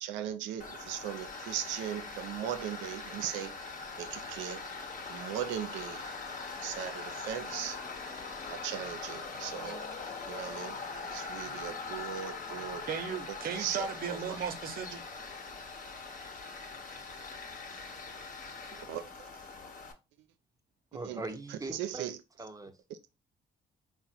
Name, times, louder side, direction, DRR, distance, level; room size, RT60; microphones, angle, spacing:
voice 1, 0.0-3.5 4.0-4.6 5.1-6.0 6.6-7.8 8.5-9.8 10.3-10.8 11.1-12.9 13.6-13.8 14.1-14.2 18.9-19.0 21.1-21.2 21.7-22.2, right 10 dB, 85° right, 0.5 m, -38 dB
Tools, 0.6-19.9, left 4 dB, 45° left, 1.0 m, -42 dB
voice 2, 12.9-15.0, right 6 dB, 50° right, 0.7 m, -36 dB
voice 3, 20.9-22.7, right 2 dB, 20° right, 0.8 m, -41 dB
3.8 x 2.1 x 4.3 m
supercardioid pair, 55°, 19 cm